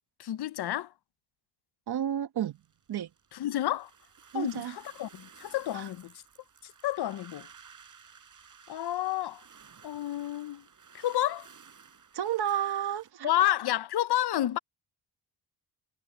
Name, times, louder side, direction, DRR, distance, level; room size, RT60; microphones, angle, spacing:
voice 1, 0.2-0.9 3.3-3.9 4.3-6.1 6.6-7.5 8.7-9.4 9.8-10.7 10.9-11.5 13.2-14.6, left 13 dB, 75° left, 0.9 m, -30 dB
voice 2, 1.9-2.6 2.9-3.1 4.3-4.8 5.7-5.9 12.1-13.3, right 10 dB, 70° right, 1.6 m, -31 dB
sound 1, 2.5-13.1, right 6 dB, 50° right, 5.1 m, -55 dB
cardioid pair, 85°, 40 cm